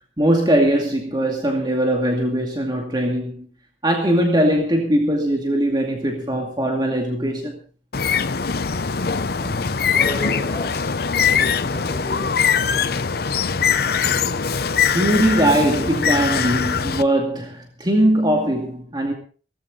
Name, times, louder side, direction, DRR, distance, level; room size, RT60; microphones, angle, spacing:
voice 1, 0.2-3.5 3.8-7.6 14.0-14.2 14.9-19.1, right 1 dB, 25° right, 2.3 m, -20 dB
Bird, 7.9-17.0, left 6 dB, 55° left, 0.7 m, -22 dB
voice 2, 9.0-14.3, equal, 15° left, 7.0 m, -37 dB
18.0 x 15.0 x 3.9 m
head